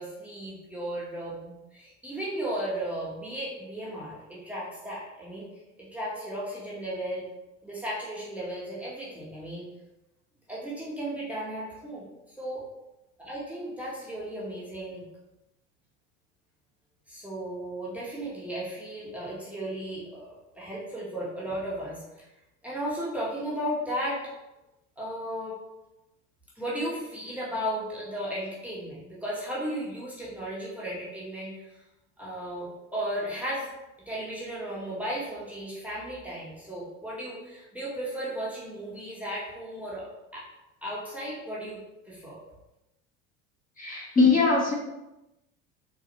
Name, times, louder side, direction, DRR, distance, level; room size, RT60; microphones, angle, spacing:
voice 1, 0.0-5.5 5.8-7.2 7.6-9.6 10.5-12.0 12.4-12.6 13.2-15.1 17.1-20.3 20.5-22.0 22.6-24.2 25.0-25.6 26.6-31.6 32.2-33.7 34.1-40.1 40.3-40.5 40.8-41.8 42.0-42.4, right 1 dB, 5° right, -7 dB, 1.1 m, -35 dB
voice 2, 43.8-44.7, left 4 dB, 25° left, -5 dB, 1.2 m, -21 dB
3.9 x 2.5 x 2.9 m, 0.95 s
hypercardioid pair, 85°, 36 cm